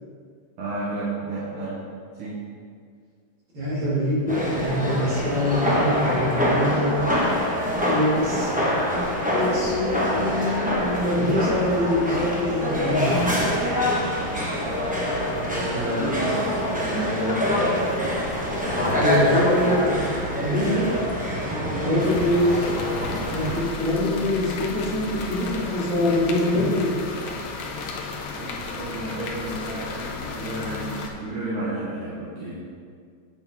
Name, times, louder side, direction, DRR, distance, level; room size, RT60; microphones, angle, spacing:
voice 1, 0.6-1.8 2.1-2.4 14.0-14.4 15.5-17.6 20.4-20.8 21.4-22.0 28.3-32.6, right 1 dB, 85° right, -8 dB, 2.0 m, -31 dB
voice 2, 3.5-7.0 7.8-8.5 9.3-9.9 10.1-13.2 19.0-20.0 20.3-20.9 21.8-22.7 23.3-26.9, left 1 dB, 65° right, -8 dB, 2.9 m, -24 dB
sound 1, 4.3-23.6, equal, 10° right, 0.4 m, -25 dB
sound 2, 22.0-31.1, left 4 dB, 70° left, 1.4 m, -34 dB
8.2 x 5.7 x 3.5 m, 2.1 s
omnidirectional pair, 2.3 m